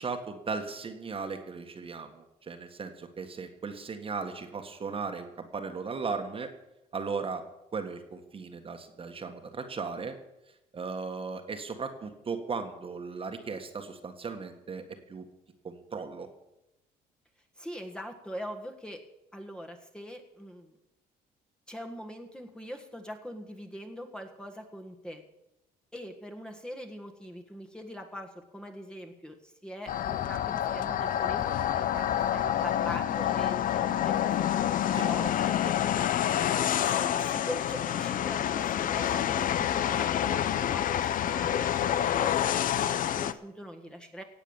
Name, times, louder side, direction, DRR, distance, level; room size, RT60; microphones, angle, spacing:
voice 1, 0.0-6.5 6.9-7.4 7.7-10.2 10.7-15.3 15.6-16.3 34.9-35.3 35.6-35.7, right 4 dB, 35° right, 6 dB, 1.7 m, -37 dB
voice 2, 17.6-19.0 19.3-20.7 21.7-25.2 25.9-35.5 36.0-36.1 36.8-44.2, equal, 5° left, 3 dB, 1.7 m, -42 dB
sound 1, 29.9-43.3, left 10 dB, 55° left, 0.7 m, -28 dB
17.0 x 8.2 x 7.2 m, 0.89 s
cardioid pair, 110°, 17 cm